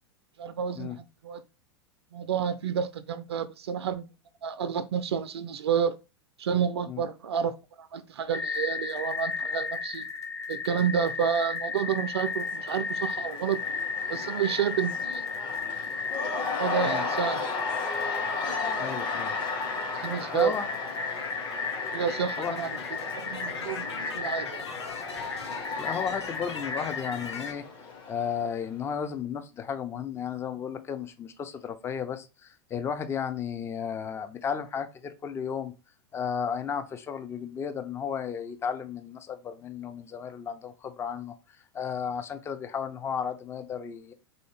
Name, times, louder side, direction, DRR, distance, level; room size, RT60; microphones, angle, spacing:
voice 1, 0.4-1.4 2.1-4.1 4.4-5.9 6.4-10.1 10.5-13.6 14.1-15.2 16.6-17.5 18.5-18.8 20.0-20.5 21.9-22.8 23.2-24.6, right 8 dB, 70° right, 0.4 m, -30 dB
sound 1, 8.3-27.5, left 4 dB, 80° left, 0.9 m, -34 dB
Cheering / Crowd, 11.9-28.8, left 3 dB, 35° left, 1.1 m, -36 dB
voice 2, 18.8-19.4 20.3-20.7 22.4-22.6 25.8-27.6 28.1-35.7 36.1-41.3 41.7-44.1, left 7 dB, 15° left, 0.5 m, -33 dB
3.6 x 2.7 x 3.3 m
figure-of-eight pair, 95°, 14 cm